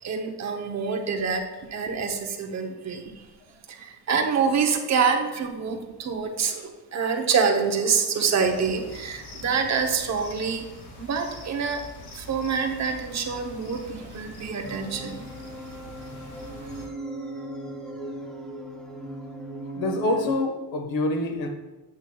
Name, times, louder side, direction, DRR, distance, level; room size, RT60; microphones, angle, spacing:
voice 1, 0.0-1.4 1.7-3.2 3.7-10.7 11.0-11.8 12.1-15.3, right 5 dB, 35° right, 3 dB, 0.8 m, -26 dB
sound 1, 8.4-16.9, left 2 dB, 60° left, 1.8 m, -44 dB
sound 2, 14.6-20.3, right 1 dB, ahead, 0.3 m, -37 dB
voice 2, 19.7-21.5, left 2 dB, 85° left, 3 dB, 1.3 m, -26 dB
8.1 x 7.9 x 2.2 m, 1.2 s
cardioid pair, 170°, 44 cm